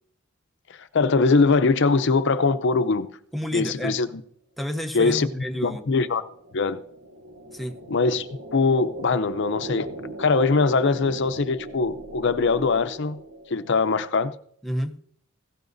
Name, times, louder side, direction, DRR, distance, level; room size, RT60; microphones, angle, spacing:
voice 1, 0.7-3.1 3.5-4.2 4.9-5.3 5.6-6.2 6.5-6.8 7.9-9.9 10.2-13.2 13.5-14.3, left 4 dB, 55° left, 11 dB, 0.6 m, -22 dB
voice 2, 3.3-3.9 4.6-5.8 7.5-7.8 14.6-15.0, equal, ahead, 3 dB, 0.7 m, -30 dB
sound 1, 5.1-13.9, right 1 dB, 65° right, 1.0 m, -39 dB
17.5 x 16.5 x 2.7 m, 0.64 s
head